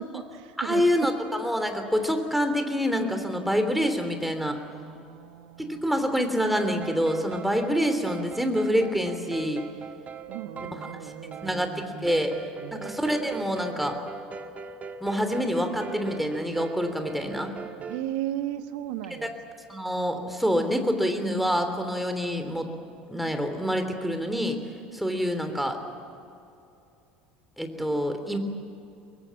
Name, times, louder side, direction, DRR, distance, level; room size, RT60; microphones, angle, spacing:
voice 1, 0.0-0.9 4.7-6.1 10.3-12.9 17.9-19.3, right 11 dB, 60° right, 10 dB, 1.5 m, -36 dB
voice 2, 0.6-4.6 5.6-9.7 11.4-11.7 12.0-12.3 12.7-14.0 15.0-17.5 19.7-22.7 23.1-24.6 24.9-25.8 27.6-28.4, equal, ahead, 6 dB, 3.3 m, -26 dB
sound 1, 6.4-18.0, right 5 dB, 30° right, 1.6 m, -41 dB
23.0 x 22.0 x 8.6 m, 2.7 s
figure-of-eight pair, 70°, 5 cm